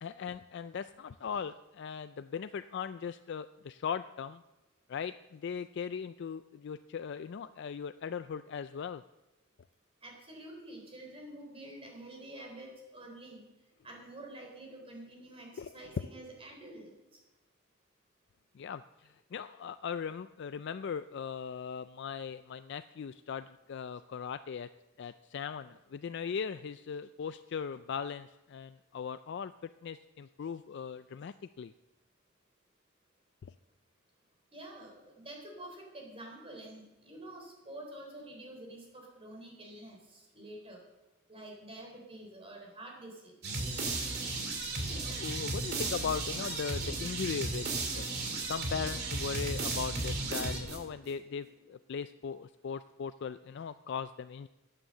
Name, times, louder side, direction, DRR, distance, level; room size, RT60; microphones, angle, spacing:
voice 1, 0.0-4.4 4.9-9.0 15.6-16.1 18.5-24.7 25.0-31.7 33.4-33.5 44.9-48.1 48.5-54.5, left 6 dB, 55° left, 12 dB, 0.3 m, -39 dB
voice 2, 10.0-13.4 13.8-16.9 34.5-40.8 41.3-43.3, right 1 dB, 30° right, 0 dB, 3.6 m, -48 dB
sound 1, 43.4-51.1, right 2 dB, 50° right, 2.6 m, -35 dB
14.0 x 9.0 x 6.7 m, 1.1 s
head